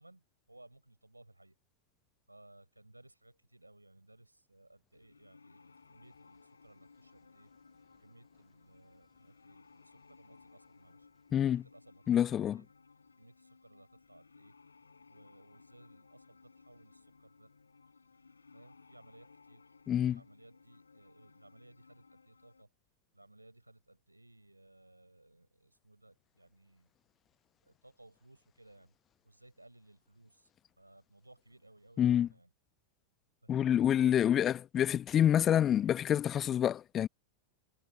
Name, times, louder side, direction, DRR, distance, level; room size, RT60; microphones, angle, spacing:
voice 1, 0.0-1.6 2.3-7.5 8.0-11.1 11.5-12.7 13.2-14.5 15.1-17.5 18.5-22.7 23.1-26.9 27.6-29.0 29.2-30.5 30.8-32.5 33.4-33.7, right 1 dB, 85° right, 5.8 m, -60 dB
sound 1, 5.0-22.6, left 4 dB, 75° left, 6.2 m, -61 dB
voice 2, 11.3-11.6 12.1-12.6 19.9-20.2 32.0-32.3 33.5-37.1, left 10 dB, 25° left, 0.9 m, -27 dB
figure-of-eight pair, 90°, 0 cm